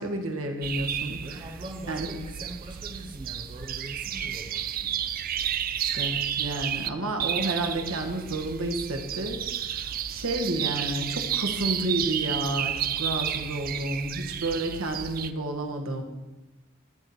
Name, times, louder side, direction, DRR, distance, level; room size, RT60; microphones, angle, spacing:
voice 1, 0.0-1.4 1.9-2.1 5.8-9.8 10.1-16.0, right 1 dB, 80° right, 3 dB, 1.5 m, -31 dB
sound 1, 0.6-6.9 7.2-15.3, right 10 dB, 45° right, 0.4 m, -32 dB
voice 2, 1.1-4.9, right 1 dB, 25° right, 2 dB, 0.9 m, -42 dB
12.5 x 4.3 x 7.9 m, 1.1 s
head